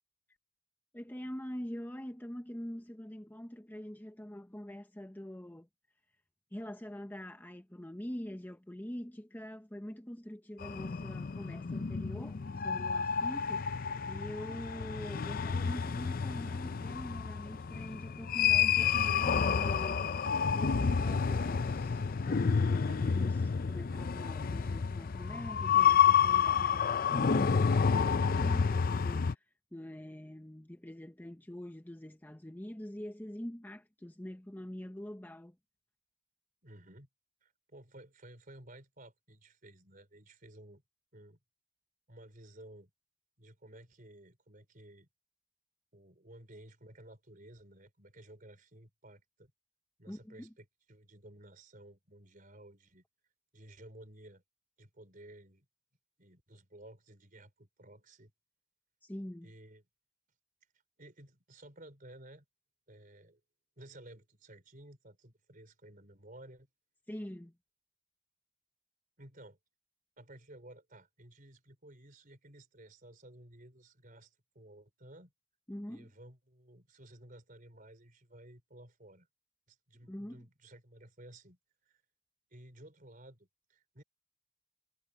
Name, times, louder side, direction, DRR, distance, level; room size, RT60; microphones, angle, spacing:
voice 1, 0.9-5.7 6.5-12.4 12.6-20.0 20.5-23.4 23.7-29.4 29.7-35.6 50.1-50.5 59.0-59.5 67.1-67.5 75.7-76.1 80.1-80.4, equal, 10° left, 0.7 m, -44 dB
sound 1, 10.6-29.3, left 7 dB, 45° left, 0.5 m, -30 dB
voice 2, 22.9-23.3 36.6-37.1 37.4-40.8 41.1-41.4 42.1-42.9 43.4-45.1 45.9-49.5 50.0-53.0 53.5-54.4 54.8-55.7 56.2-58.3 59.4-59.8 61.0-62.4 62.9-63.4 63.8-66.7 69.2-69.6 70.2-75.3 75.9-79.3 79.7-82.0 82.5-84.0, right 1 dB, 45° right, 4.5 m, -55 dB
head